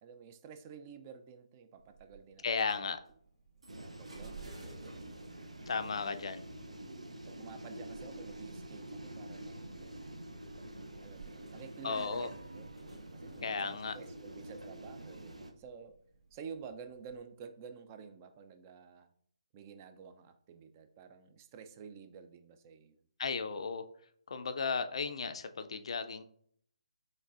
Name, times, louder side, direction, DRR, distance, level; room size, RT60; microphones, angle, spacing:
voice 1, 0.0-2.8 3.7-5.0 5.8-6.3 7.3-10.2 11.0-12.8 13.1-16.0 16.3-19.1 19.5-23.0, right 6 dB, 25° right, 9 dB, 0.3 m, -51 dB
sound 1, 1.8-17.2, right 4 dB, 70° right, 1.8 m, -58 dB
voice 2, 2.4-3.0 5.7-6.4 11.8-12.3 13.4-14.0 23.2-23.8 24.3-26.2, left 5 dB, 60° left, 9 dB, 0.4 m, -35 dB
sound 2, 3.7-15.5, right 1 dB, 90° right, 0.6 m, -47 dB
5.2 x 3.2 x 2.4 m, 0.63 s
figure-of-eight pair, 145°, 3 cm